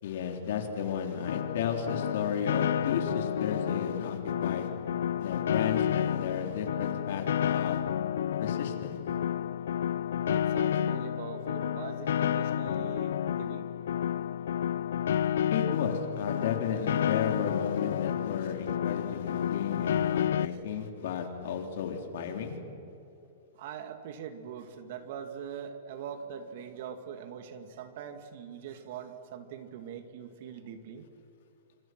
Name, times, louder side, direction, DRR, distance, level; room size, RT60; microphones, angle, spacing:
voice 1, 0.0-4.7 5.2-7.8 8.4-9.0 15.5-22.6, left 7 dB, 60° left, 4 dB, 3.7 m, -33 dB
Piano, 1.3-20.4, left 9 dB, 75° left, 0.6 m, -30 dB
voice 2, 10.2-13.7 18.4-18.5 20.5-20.6 22.2-22.3 23.6-31.1, right 8 dB, 50° right, 8 dB, 2.3 m, -42 dB
28.5 x 26.0 x 6.2 m, 2.7 s
hypercardioid pair, 160°, 0 cm